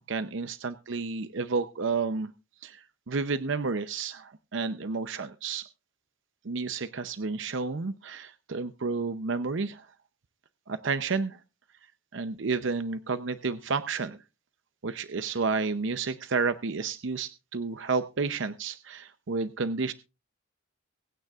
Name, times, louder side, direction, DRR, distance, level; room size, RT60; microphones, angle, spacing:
voice 1, 0.1-2.3 2.6-5.6 6.4-9.9 10.7-11.4 12.1-14.2 14.8-19.9, right 4 dB, 65° right, 11 dB, 0.7 m, -31 dB
24.0 x 9.2 x 2.4 m, 0.29 s
head